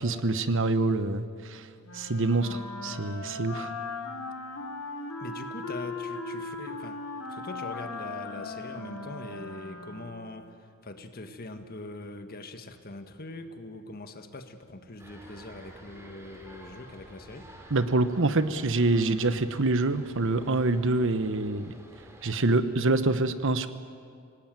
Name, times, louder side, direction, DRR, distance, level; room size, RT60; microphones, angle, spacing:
voice 1, 0.0-3.7 17.7-21.7 22.2-23.7, right 2 dB, 60° right, 11 dB, 1.1 m, -26 dB
Wind instrument woodwind instrument, 1.8-10.4, left 3 dB, 80° left, 4.1 m, -38 dB
voice 2, 5.2-7.0 7.3-17.5, left 2 dB, 45° left, 8 dB, 1.6 m, -42 dB
sound 1, 15.0-22.3, equal, 15° right, 3.6 m, -50 dB
26.0 x 18.5 x 9.1 m, 2.2 s
head